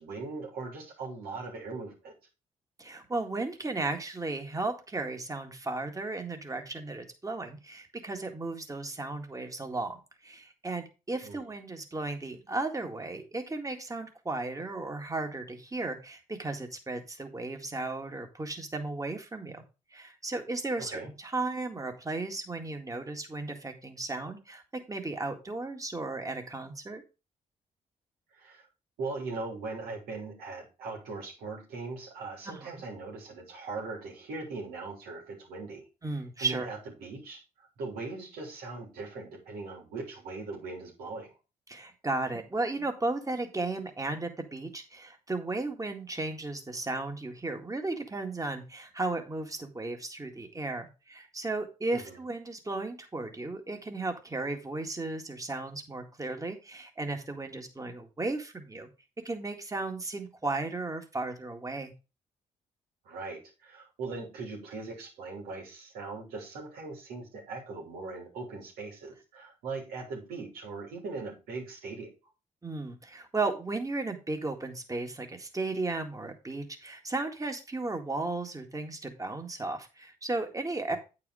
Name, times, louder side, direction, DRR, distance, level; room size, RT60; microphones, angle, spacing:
voice 1, 0.0-2.1 11.2-11.4 20.8-21.1 28.3-28.7 29.0-35.8 36.4-41.3 51.9-52.2 63.0-72.1, right 3 dB, 85° right, -1 dB, 3.2 m, -40 dB
voice 2, 2.8-10.0 10.2-19.6 19.9-27.0 32.5-32.7 36.0-36.7 41.7-58.9 59.2-61.9 72.6-81.0, right 2 dB, 20° right, 4 dB, 1.9 m, -35 dB
8.6 x 4.9 x 4.9 m, 0.30 s
supercardioid pair, 55°, 15 cm